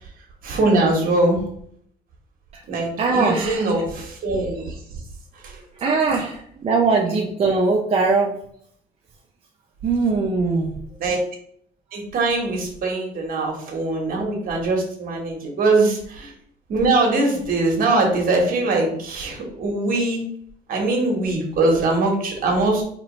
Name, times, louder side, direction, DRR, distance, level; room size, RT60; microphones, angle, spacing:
voice 1, 0.4-1.4 2.7-4.8 5.3-5.6 11.0-11.2 11.9-16.3 16.7-20.2 20.7-22.8, right 2 dB, 60° right, 1 dB, 1.3 m, -22 dB
voice 2, 3.0-3.8 5.7-8.4 9.8-10.8, right 4 dB, 35° right, -2 dB, 0.6 m, -21 dB
4.3 x 3.1 x 3.1 m, 0.66 s
cardioid pair, 110°, 17 cm